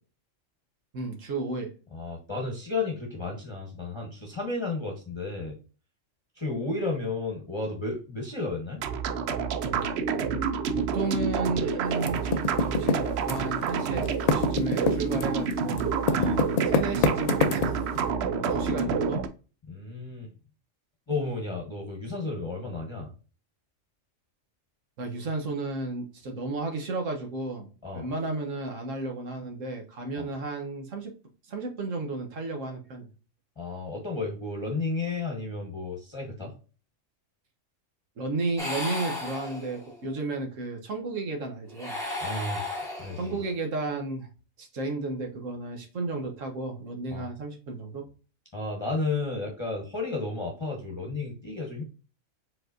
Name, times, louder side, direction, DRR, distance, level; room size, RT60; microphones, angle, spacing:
voice 1, 0.9-1.7 10.9-17.8 18.2-19.2 25.0-31.1 31.4-33.1 38.2-42.0 43.2-44.3 44.6-48.0, right 3 dB, 80° right, 3 dB, 1.4 m, -33 dB
voice 2, 1.9-5.6 6.4-8.8 16.2-16.4 18.4-19.0 19.7-20.3 21.1-23.1 27.8-28.1 30.2-30.3 33.6-36.5 42.2-43.4 47.1-47.3 48.5-51.8, left 3 dB, 25° left, -1 dB, 1.1 m, -33 dB
sound 1, 8.8-19.3, right 6 dB, 65° right, 0.7 m, -28 dB
Typing, 12.0-13.7 14.0-18.0, left 4 dB, 70° left, 0.3 m, -25 dB
sound 2, 38.6-40.0 41.7-43.5, left 2 dB, ahead, 1.4 m, -35 dB
4.9 x 4.1 x 2.6 m, 0.35 s
omnidirectional pair, 1.3 m